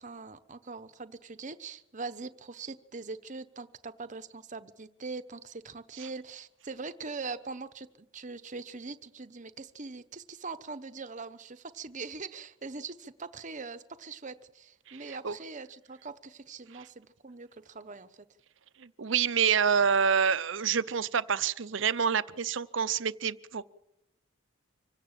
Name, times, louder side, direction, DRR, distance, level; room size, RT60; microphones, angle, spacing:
voice 1, 0.0-18.3, right 4 dB, 40° right, 12 dB, 1.0 m, -42 dB
voice 2, 18.8-23.6, right 7 dB, 65° right, 15 dB, 0.7 m, -27 dB
25.0 x 17.0 x 7.4 m, 0.88 s
head